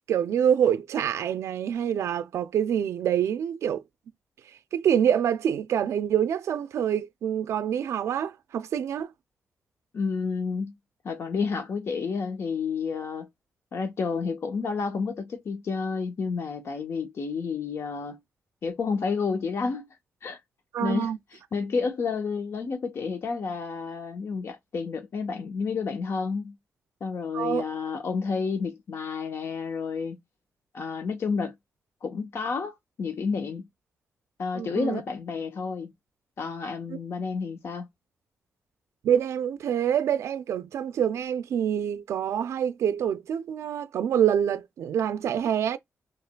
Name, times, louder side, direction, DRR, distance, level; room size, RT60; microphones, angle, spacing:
voice 1, 0.1-3.8 4.7-9.1 20.7-21.2 27.3-27.6 34.5-35.0 39.0-45.8, right 9 dB, 80° right, 0.4 m, -26 dB
voice 2, 9.9-10.7 11.0-13.3 13.7-18.2 18.6-19.9 20.2-20.4 20.8-26.6 27.0-30.2 30.7-31.5 32.0-33.7 34.4-35.9 36.4-37.9, left 5 dB, 65° left, 0.8 m, -30 dB
5.7 x 3.0 x 2.2 m
cardioid pair, 70°, 5 cm